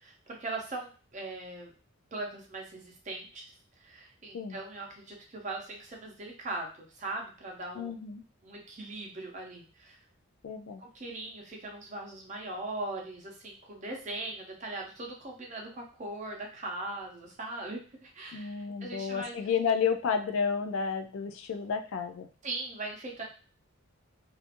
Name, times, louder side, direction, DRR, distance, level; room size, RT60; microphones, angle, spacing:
voice 1, 0.0-1.7 2.1-3.4 3.8-7.9 8.4-10.0 10.8-19.3 22.4-23.2, right 2 dB, 35° right, 0 dB, 0.6 m, -40 dB
voice 2, 7.8-8.2 10.4-10.8 18.3-22.3, left 6 dB, 65° left, 7 dB, 0.3 m, -31 dB
2.7 x 2.4 x 2.5 m, 0.37 s
head